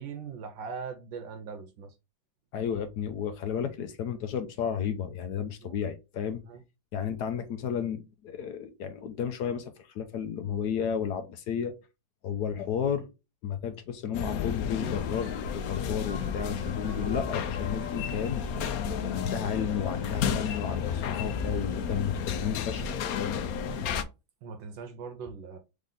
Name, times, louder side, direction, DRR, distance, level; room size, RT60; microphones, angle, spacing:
voice 1, 0.0-1.9 5.6-5.8 6.5-6.6 23.6-23.8 24.4-25.6, right 5 dB, 75° right, 1.4 m, -40 dB
voice 2, 2.5-6.4 6.9-11.7 12.2-13.1 13.4-18.4 19.1-22.9 23.2-23.4, left 8 dB, 70° left, 1.0 m, -32 dB
sound 1, 14.1-24.0, left 7 dB, 85° left, 0.8 m, -32 dB
Human voice / Cheering / Applause, 14.5-22.2, left 3 dB, 45° left, 0.6 m, -48 dB
3.8 x 3.6 x 3.7 m
omnidirectional pair, 2.2 m